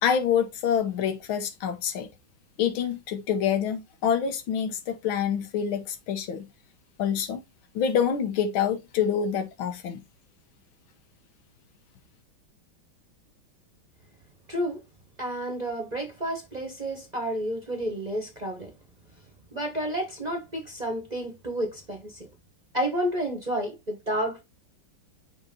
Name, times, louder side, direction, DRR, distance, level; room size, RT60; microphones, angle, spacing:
voice 1, 0.0-2.1 2.6-6.5 7.0-7.4 7.8-10.0, left 8 dB, 80° left, 1.8 m, -26 dB
voice 2, 14.5-14.8 15.2-18.7 19.5-22.3 22.7-24.4, right 1 dB, 30° right, 0.9 m, -30 dB
6.3 x 3.0 x 5.1 m
omnidirectional pair, 2.2 m